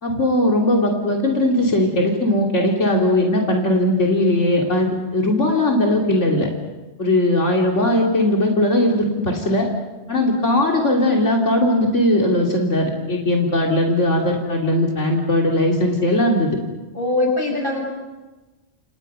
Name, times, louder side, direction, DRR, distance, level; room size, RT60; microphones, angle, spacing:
voice 1, 0.0-6.5 7.0-9.7 10.1-16.5, left 1 dB, 85° left, -1 dB, 3.4 m, -19 dB
voice 2, 16.9-17.9, left 2 dB, 45° left, 2 dB, 6.7 m, -21 dB
29.5 x 28.5 x 5.6 m, 1.2 s
omnidirectional pair, 1.2 m